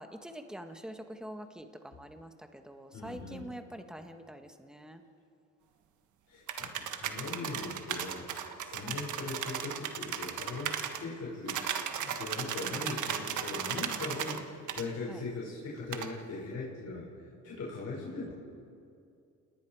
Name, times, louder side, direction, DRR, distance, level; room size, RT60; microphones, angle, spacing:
voice 1, 0.0-5.0 8.8-9.0 15.1-15.2 18.2-18.3, equal, ahead, 6 dB, 1.6 m, -45 dB
voice 2, 2.9-3.5 6.3-17.1 17.4-18.3, left 3 dB, 60° left, -5 dB, 6.3 m, -40 dB
sound 1, 6.5-11.0 11.5-14.4 14.7-14.8 15.9-16.1, right 8 dB, 75° right, 1.5 m, -36 dB
28.5 x 19.5 x 4.9 m, 2.5 s
cardioid pair, 90°, 30 cm